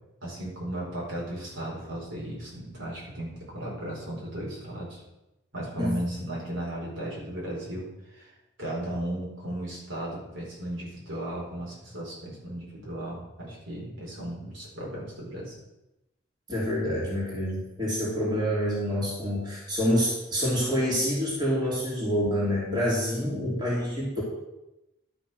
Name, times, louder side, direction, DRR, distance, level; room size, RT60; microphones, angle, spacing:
voice 1, 0.2-5.0 5.5-8.3 8.6-15.5 23.1-23.6, right 1 dB, 65° right, -5 dB, 4.8 m, -36 dB
voice 2, 16.5-24.2, equal, 20° right, -6 dB, 3.3 m, -27 dB
11.5 x 6.3 x 6.4 m, 0.94 s
head